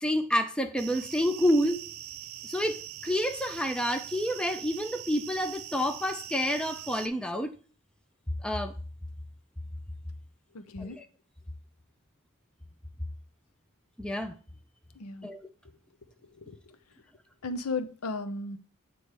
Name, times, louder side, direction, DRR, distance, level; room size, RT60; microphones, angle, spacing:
voice 1, 0.0-1.8 2.4-7.5 8.4-8.7 10.8-11.0 14.0-14.3 15.2-15.4, equal, 5° left, 0.4 m, -28 dB
sound 1, 0.8-7.1, right 11 dB, 80° right, 0.5 m, -42 dB
voice 2, 10.5-11.0 15.0-15.3 16.4-16.8 17.4-18.6, left 3 dB, 85° left, 0.7 m, -35 dB
8.2 x 3.1 x 4.7 m
head